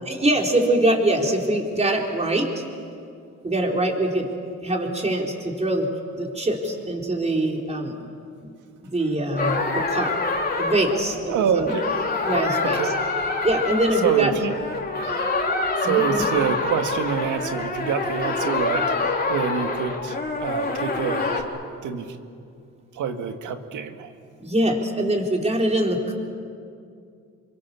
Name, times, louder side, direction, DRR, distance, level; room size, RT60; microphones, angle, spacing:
voice 1, 0.1-2.6 3.4-4.3 4.6-7.9 8.4-8.5 8.9-10.1 10.6-11.7 12.3-12.9 13.4-14.3 15.8-16.2 24.4-26.1, right 1 dB, 20° right, 1 dB, 4.5 m, -23 dB
sound 1, 9.4-21.4, left 3 dB, 30° left, 3.6 m, -26 dB
voice 2, 11.3-11.9 12.6-13.0 14.0-14.5 15.8-21.4 21.8-22.2 22.9-24.1, right 7 dB, 80° right, 6 dB, 2.0 m, -26 dB
28.5 x 23.5 x 7.1 m, 2.3 s
cardioid pair, 90°, 30 cm